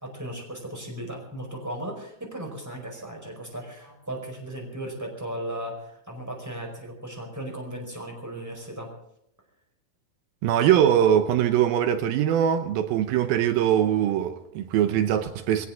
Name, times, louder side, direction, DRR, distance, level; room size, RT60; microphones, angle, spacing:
voice 1, 0.0-8.9, right 1 dB, 5° right, 4.5 m, -36 dB
voice 2, 10.4-15.7, right 10 dB, 80° right, 2.7 m, -22 dB
22.0 x 17.5 x 3.7 m
omnidirectional pair, 4.3 m